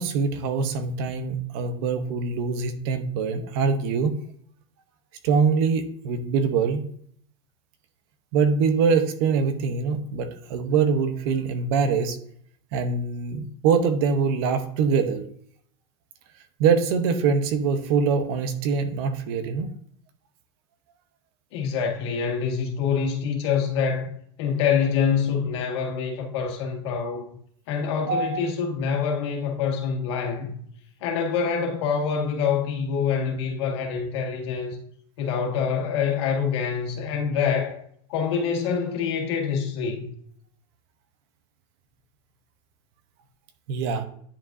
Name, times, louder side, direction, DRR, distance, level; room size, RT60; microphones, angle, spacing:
voice 1, 0.0-4.1 5.2-6.8 8.3-12.2 12.7-15.2 16.6-19.7 28.1-28.4 43.7-44.0, right 5 dB, 50° right, 0.9 m, -23 dB
voice 2, 21.5-24.1 24.4-27.3 27.7-30.5 31.0-34.8 35.2-37.8 38.1-40.1, left 6 dB, 60° left, 1.8 m, -26 dB
10.0 x 5.2 x 2.7 m
supercardioid pair, 160°, 16 cm